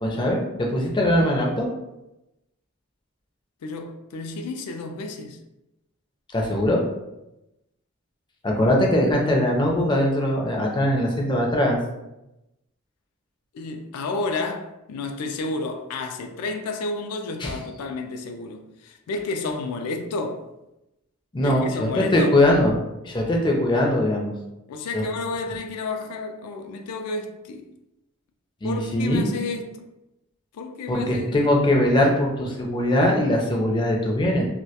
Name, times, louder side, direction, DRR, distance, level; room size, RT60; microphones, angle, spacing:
voice 1, 0.0-1.7 6.3-6.8 8.4-11.8 17.4-17.5 21.3-22.8 23.0-24.3 24.9-25.0 28.6-29.3 30.9-34.4, left 1 dB, 20° left, 0.4 m, -21 dB
voice 2, 3.6-5.4 13.5-20.5 21.4-22.4 24.7-27.7 28.6-29.9 30.5-31.4, left 3 dB, 90° left, 0.3 m, -31 dB
2.2 x 2.1 x 2.7 m
head